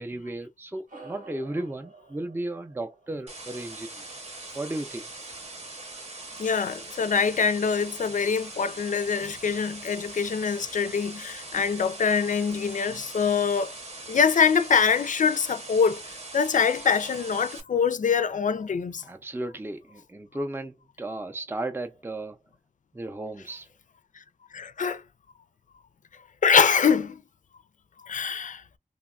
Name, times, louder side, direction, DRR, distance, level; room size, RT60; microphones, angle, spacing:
voice 1, 0.0-4.1 4.5-5.1 19.0-22.4 22.9-23.7, right 1 dB, 15° right, 0.4 m, -35 dB
sound 1, 0.9-5.6, right 3 dB, 85° right, 1.4 m, -51 dB
sound 2, 3.3-17.6, right 2 dB, 55° right, 0.9 m, -41 dB
voice 2, 6.4-13.7 14.1-19.0 24.5-25.0 26.4-27.2 28.0-28.6, left 6 dB, 65° left, 0.4 m, -24 dB
2.9 x 2.2 x 2.3 m
wide cardioid pair, 75°, 14 cm